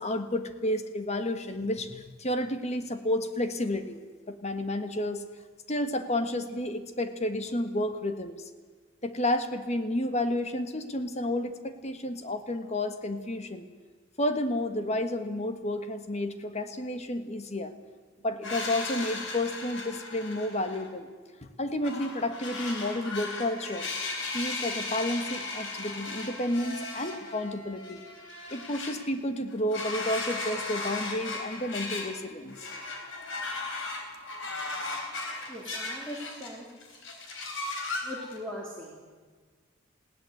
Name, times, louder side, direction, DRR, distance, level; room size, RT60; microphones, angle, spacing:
voice 1, 0.0-4.0 4.3-5.2 5.7-8.4 9.0-13.7 14.2-17.7 18.2-21.1 21.4-23.9 24.3-28.0 28.5-32.6, left 1 dB, 35° left, 8 dB, 1.5 m, -31 dB
sound 1, 18.4-20.9 21.8-28.9 29.5-32.2 32.5-36.6 36.8-38.4, left 3 dB, 65° left, 3.9 m, -36 dB
voice 2, 35.5-36.7 38.0-39.1, equal, 5° left, -4 dB, 3.2 m, -40 dB
20.0 x 16.5 x 8.0 m, 1.5 s
head